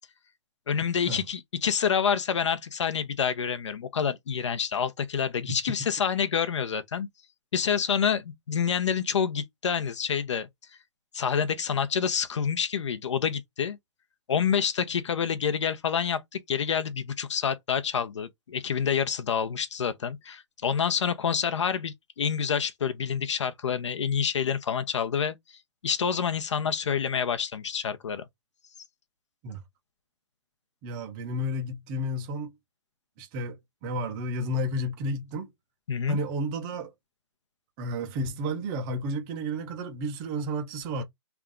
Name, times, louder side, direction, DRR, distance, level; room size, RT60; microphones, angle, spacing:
voice 1, 0.7-7.1 7.5-10.5 11.1-13.8 14.3-25.4 25.8-28.2 35.9-36.2, left 7 dB, 70° left, 0.8 m, -27 dB
voice 2, 30.8-32.5 33.2-35.5 36.1-36.9 37.8-41.0, equal, 10° right, 0.3 m, -32 dB
3.5 x 2.3 x 3.7 m
hypercardioid pair, 165°, 15 cm